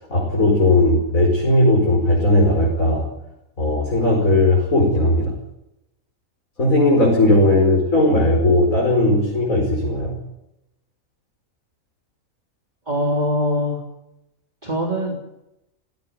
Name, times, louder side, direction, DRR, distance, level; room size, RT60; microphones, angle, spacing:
voice 1, 0.1-3.1 3.6-5.3 6.6-10.2, left 1 dB, 70° left, -2 dB, 5.8 m, -17 dB
voice 2, 12.9-13.8 14.6-15.4, equal, 30° right, 0 dB, 3.6 m, -23 dB
17.0 x 17.0 x 9.4 m, 0.88 s
omnidirectional pair, 1.5 m